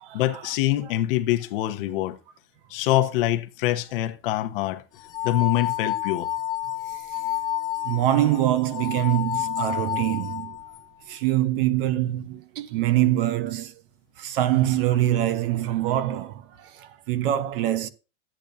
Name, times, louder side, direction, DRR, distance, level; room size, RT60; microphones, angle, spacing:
voice 1, 0.1-2.2 2.7-4.8 5.2-6.3, left 14 dB, 50° left, 1.0 m, -24 dB
sound 1, 5.0-10.8, left 12 dB, 10° left, 0.6 m, -30 dB
voice 2, 7.8-10.6 11.1-13.7 14.2-17.9, right 13 dB, 50° right, 1.0 m, -24 dB
13.0 x 8.8 x 2.6 m
supercardioid pair, 175°, 35 cm